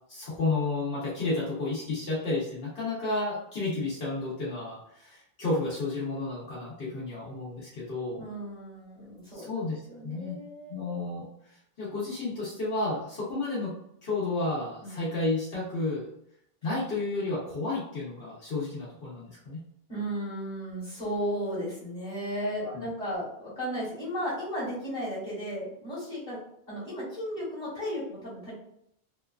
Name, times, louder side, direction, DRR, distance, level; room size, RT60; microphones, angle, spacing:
voice 1, 0.1-8.2 9.3-10.4 10.7-13.7 14.0-16.1 16.6-19.6 22.6-22.8, left 2 dB, 70° left, -8 dB, 1.1 m, -32 dB
voice 2, 8.2-9.5 9.9-10.9 14.8-15.0 19.9-26.4 26.7-28.5, equal, 40° left, -11 dB, 1.3 m, -35 dB
2.9 x 2.3 x 2.3 m, 0.74 s
omnidirectional pair, 1.0 m